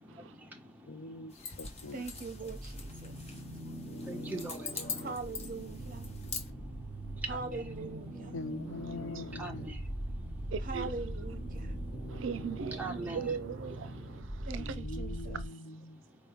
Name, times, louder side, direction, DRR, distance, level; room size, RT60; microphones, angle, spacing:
voice 1, 0.0-1.6 3.0-5.1 6.0-7.4 8.2-8.4 9.3-10.5 11.6-12.2 12.8-13.3 14.3-14.4 15.9-16.3, right 2 dB, 10° right, 1.0 m, -46 dB
voice 2, 0.9-2.1 8.3-9.9 12.0-12.2 14.6-16.0, left 2 dB, 75° left, 0.6 m, -43 dB
sound 1, 1.3-6.5, left 5 dB, 30° left, 1.0 m, -44 dB
sound 2, 1.7-15.5, right 1 dB, 50° left, 2.8 m, -41 dB
voice 3, 1.9-3.2 5.0-6.1 7.3-8.3 10.6-11.7 14.5-15.4, right 3 dB, 45° right, 1.0 m, -41 dB
voice 4, 8.9-9.5 10.5-10.9 12.1-14.8 15.3-15.4, right 6 dB, 75° right, 0.5 m, -40 dB
4.9 x 3.1 x 3.4 m
head